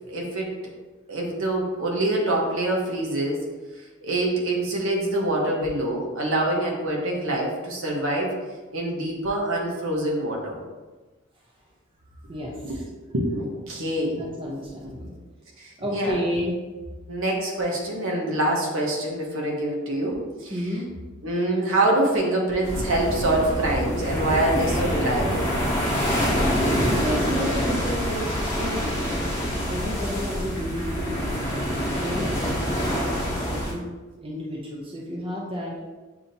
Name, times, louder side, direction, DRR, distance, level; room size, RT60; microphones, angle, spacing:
voice 1, 0.1-0.5 1.1-3.5 4.0-8.4 8.7-10.6 12.6-12.8 13.1-14.2 15.6-16.1 17.1-20.5 21.2-25.5, right 1 dB, 65° right, -1 dB, 1.0 m, -25 dB
voice 2, 12.2-12.8 13.9-15.2 15.8-16.6 20.5-20.9 26.8-33.9 34.2-35.8, equal, 25° right, -4 dB, 0.6 m, -32 dB
sound 1, 22.6-33.7, equal, 10° left, 1.1 m, -26 dB
7.0 x 2.8 x 2.7 m, 1.2 s
head